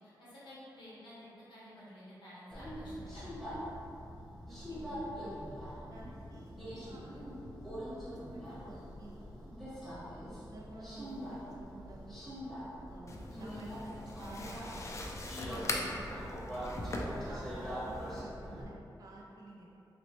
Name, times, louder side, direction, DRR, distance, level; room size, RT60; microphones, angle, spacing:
voice 1, 0.0-3.3 15.3-16.3 16.8-17.0, left 1 dB, 90° left, -9 dB, 1.1 m, -51 dB
Subway metro underground, 2.5-18.7, equal, ahead, 0.8 m, -43 dB
voice 2, 4.5-5.3 5.9-7.3 7.9-9.2 9.8-10.2 10.5-12.2 12.9-14.6 17.2-19.7, right 2 dB, 50° right, -3 dB, 0.4 m, -51 dB
sound 1, 13.1-18.2, left 2 dB, 40° left, 0.3 m, -41 dB
3.0 x 3.0 x 2.9 m, 2.7 s
wide cardioid pair, 110°, 8 cm